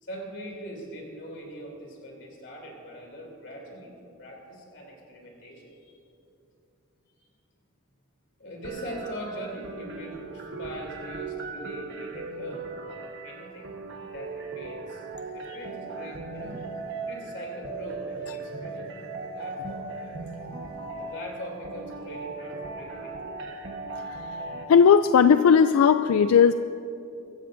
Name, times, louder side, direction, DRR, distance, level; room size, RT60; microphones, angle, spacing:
voice 1, 0.0-3.9 4.2-6.0 8.4-12.7 13.2-13.7 14.1-15.0 15.3-16.6 17.1-18.9 19.3-20.1 21.0-23.2, equal, 55° left, -1 dB, 3.3 m, -41 dB
sound 1, 8.6-24.6, right 3 dB, 55° right, 1.2 m, -38 dB
voice 2, 24.7-26.5, left 6 dB, 80° left, 11 dB, 0.3 m, -17 dB
24.5 x 14.5 x 2.6 m, 2.8 s
head